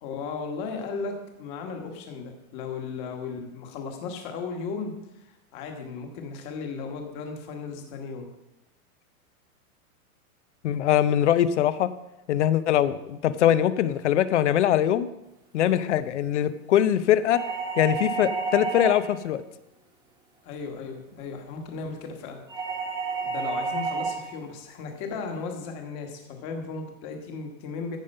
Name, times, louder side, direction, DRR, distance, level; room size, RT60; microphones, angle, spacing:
voice 1, 0.0-8.3 20.4-22.4 23.2-28.0, left 4 dB, 25° left, 4 dB, 1.4 m, -36 dB
voice 2, 10.6-11.9 12.3-15.1 15.5-17.4 17.8-19.4, left 11 dB, 50° left, 15 dB, 0.6 m, -22 dB
sound 1, 17.3-19.2 22.5-24.3, right 4 dB, 10° right, 1.2 m, -30 dB
14.5 x 5.2 x 5.5 m, 0.92 s
supercardioid pair, 170°, 45 cm